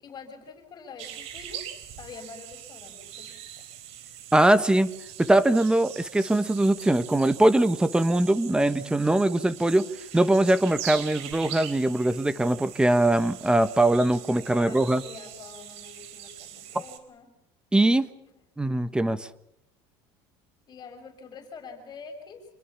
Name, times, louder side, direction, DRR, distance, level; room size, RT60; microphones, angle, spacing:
voice 1, 0.0-3.3 8.8-9.2 14.5-17.3 20.7-22.5, left 5 dB, 35° left, 5 dB, 6.4 m, -45 dB
sound 1, 1.0-17.0, right 10 dB, 65° right, 3.7 m, -42 dB
voice 2, 4.3-4.9 5.2-9.9 10.1-15.0 17.7-18.1 18.6-19.3, right 1 dB, 5° right, 14 dB, 1.2 m, -22 dB
27.0 x 21.0 x 7.2 m, 0.83 s
cardioid pair, 125°, 12 cm